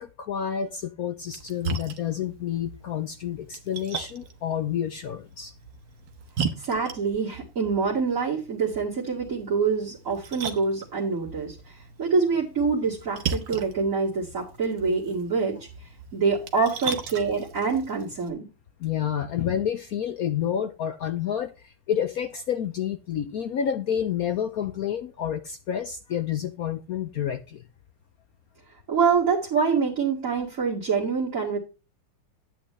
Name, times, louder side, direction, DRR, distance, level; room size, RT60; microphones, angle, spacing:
voice 1, 0.0-5.5 16.5-16.7 18.8-27.6, left 9 dB, 65° left, 1.0 m, -29 dB
Splash splatter, 1.2-18.3, right 5 dB, 75° right, 1.9 m, -38 dB
voice 2, 6.6-15.7 16.1-18.4 28.9-31.6, right 5 dB, 45° right, 2.5 m, -25 dB
11.0 x 9.0 x 3.2 m
omnidirectional pair, 2.1 m